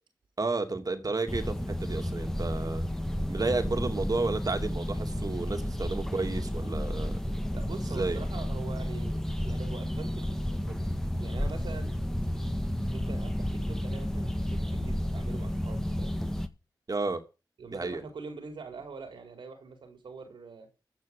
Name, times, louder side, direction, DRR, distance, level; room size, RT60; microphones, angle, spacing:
voice 1, 0.4-2.8 3.3-7.1 7.9-8.2 16.9-17.2 17.7-18.0, right 3 dB, 50° right, 2.7 m, -32 dB
sound 1, 1.3-16.5, equal, 5° left, 1.8 m, -32 dB
voice 2, 7.5-10.8 11.2-11.9 12.8-16.2 17.6-20.7, right 4 dB, 85° right, 4.2 m, -44 dB
15.0 x 5.7 x 9.1 m
cardioid pair, 50°, 8 cm